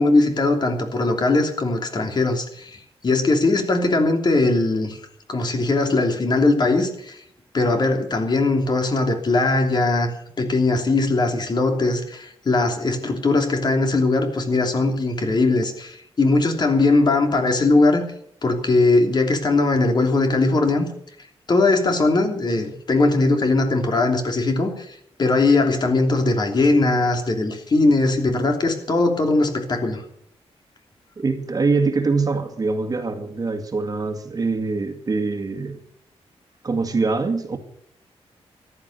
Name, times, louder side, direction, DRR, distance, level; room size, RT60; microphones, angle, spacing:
voice 1, 0.0-5.0 5.3-7.2 7.5-10.1 10.4-18.0 18.4-20.9 21.5-30.0, left 2 dB, 40° left, 4 dB, 3.1 m, -20 dB
voice 2, 31.2-35.8 36.6-37.6, right 4 dB, 35° right, 6 dB, 1.9 m, -23 dB
14.5 x 12.0 x 6.6 m, 0.67 s
wide cardioid pair, 125°, 11 cm